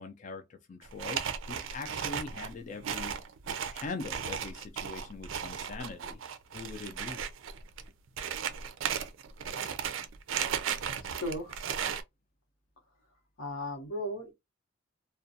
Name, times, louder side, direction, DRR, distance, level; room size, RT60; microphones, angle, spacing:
voice 1, 0.0-3.1 3.7-6.2 6.5-7.2, left 3 dB, 40° left, 0.4 m, -42 dB
sound 1, 0.8-12.0, right 7 dB, 85° right, 0.4 m, -35 dB
voice 2, 11.0-11.7 13.4-14.3, left 1 dB, 90° left, 0.9 m, -36 dB
2.3 x 2.2 x 2.6 m
head